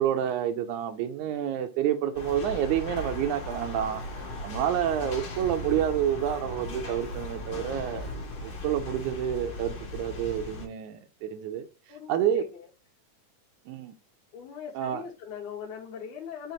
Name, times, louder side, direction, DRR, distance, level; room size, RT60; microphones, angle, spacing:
voice 1, 0.0-4.0 4.4-8.1 8.4-11.7 12.1-12.5 13.7-13.9 14.8-15.0, right 10 dB, 80° right, 2.0 m, -28 dB
sound 1, 2.1-10.7, left 2 dB, 55° left, 2.0 m, -37 dB
voice 2, 11.9-12.7 14.3-16.5, left 7 dB, 80° left, 2.2 m, -40 dB
5.6 x 2.9 x 2.8 m
omnidirectional pair, 3.5 m